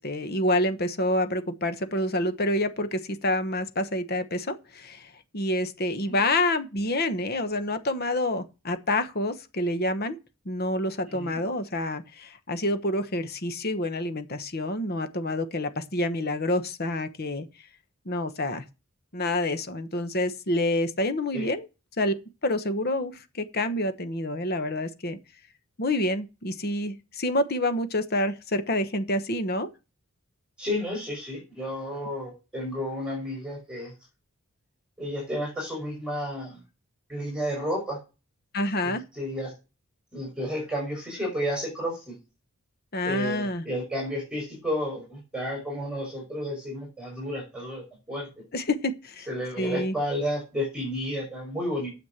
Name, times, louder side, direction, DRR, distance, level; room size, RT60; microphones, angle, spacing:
voice 1, 0.0-10.2 10.4-17.5 18.0-18.6 19.1-21.7 22.0-22.2 22.4-25.2 25.8-29.7 38.5-39.0 42.9-43.6 48.5-49.3 49.6-49.9, left 1 dB, 45° left, 1.1 m, -28 dB
voice 2, 30.6-33.9 35.0-36.6 37.1-38.0 38.8-39.5 40.1-42.2 43.0-48.3 49.3-51.9, equal, 5° right, 5.7 m, -32 dB
9.5 x 7.3 x 7.3 m
head